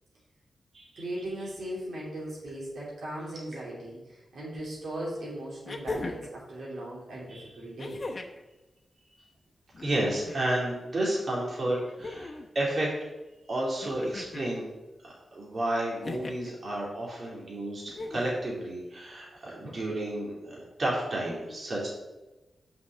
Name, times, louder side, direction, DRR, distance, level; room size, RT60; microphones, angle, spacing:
voice 1, 1.0-8.0, right 1 dB, 80° right, -5 dB, 2.5 m, -38 dB
sound 1, 4.6-4.7 5.7-6.4 7.8-8.5 9.7-10.5 11.7-12.5 13.8-14.5 16.0-16.5 17.9-18.5 19.8-19.9, left 3 dB, 50° left, 0.8 m, -39 dB
voice 2, 9.8-12.9 13.5-14.7 15.0-21.9, right 1 dB, 55° right, -5 dB, 2.4 m, -31 dB
5.5 x 4.8 x 6.3 m, 1.1 s
cardioid pair, 70°, 0 cm